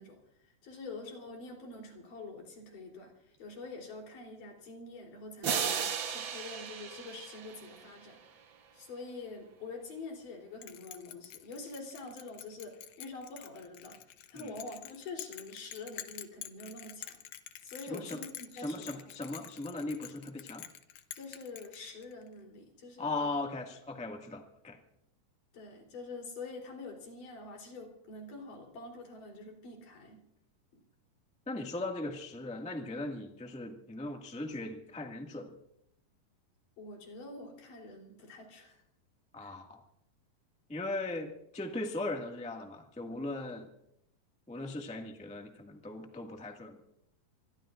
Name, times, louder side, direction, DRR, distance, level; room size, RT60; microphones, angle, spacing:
voice 1, 0.0-8.2 8.7-14.0 14.3-17.2 17.6-19.1 21.1-23.3 25.5-30.3 30.7-30.8 36.8-38.8 39.4-39.5, left 3 dB, 70° left, 1 dB, 5.1 m, -46 dB
sound 1, 5.4-8.3, right 7 dB, 70° right, 1.2 m, -35 dB
Bell, 10.6-22.3, left 13 dB, 85° left, 2.7 m, -48 dB
voice 2, 17.8-18.2 18.5-20.7 23.0-24.8 31.5-35.5 39.3-39.8 40.7-43.7 44.5-46.8, left 2 dB, 5° left, 2 dB, 0.6 m, -38 dB
26.0 x 21.5 x 2.5 m, 0.78 s
omnidirectional pair, 3.9 m